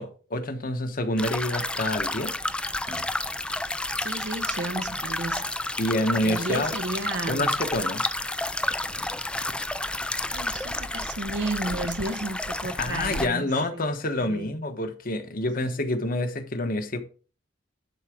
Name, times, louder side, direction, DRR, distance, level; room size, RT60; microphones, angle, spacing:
voice 1, 0.0-2.3 2.9-3.1 5.8-6.7 7.3-8.1 12.8-17.0, left 1 dB, 50° left, 1.1 m, -27 dB
sound 1, 1.2-13.3, left 2 dB, 5° left, 0.4 m, -30 dB
voice 2, 4.0-5.4 6.2-7.6 10.3-14.5, right 2 dB, 65° right, 0.9 m, -33 dB
11.0 x 4.0 x 4.9 m
head